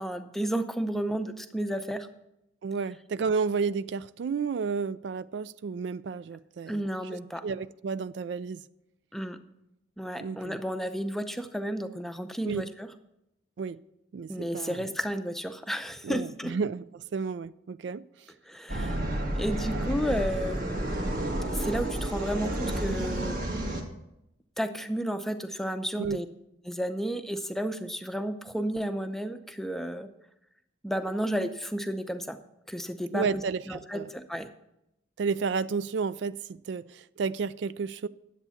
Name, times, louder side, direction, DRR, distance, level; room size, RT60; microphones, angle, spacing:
voice 1, 0.0-2.1 6.7-7.4 9.1-9.4 10.0-12.9 14.3-16.5 18.5-19.0 19.3-20.8 21.5-23.4 24.6-26.3 26.7-30.1 30.8-32.4 32.7-33.3 33.7-34.5, equal, ahead, 8 dB, 0.6 m, -32 dB
voice 2, 2.6-6.8 7.1-8.6 10.2-10.6 12.4-12.7 13.6-13.8 14.1-14.9 16.0-18.0 26.0-26.2 33.1-34.1 35.2-38.1, right 5 dB, 65° right, 16 dB, 0.3 m, -32 dB
sound 1, 18.7-23.8, right 1 dB, 45° right, 2.0 m, -30 dB
10.5 x 8.1 x 7.1 m, 0.84 s
head